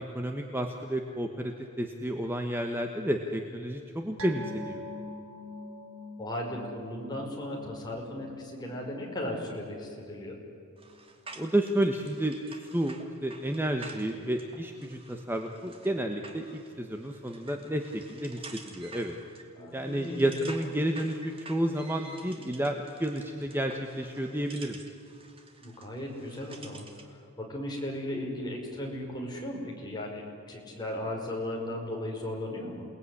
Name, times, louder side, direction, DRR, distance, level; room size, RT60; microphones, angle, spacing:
voice 1, 0.0-4.8 11.4-19.2 19.7-24.8, right 1 dB, 10° right, 4 dB, 1.3 m, -31 dB
sound 1, 4.2-11.0 11.3-11.5 11.9-12.0, left 2 dB, 70° right, 3.2 m, -45 dB
voice 2, 6.2-10.3 19.5-20.2 25.6-30.2 30.5-32.9, left 1 dB, 20° left, -1 dB, 5.6 m, -36 dB
sound 2, 10.8-27.1, right 3 dB, 25° right, 2.7 m, -50 dB
28.5 x 19.5 x 9.9 m, 2.6 s
head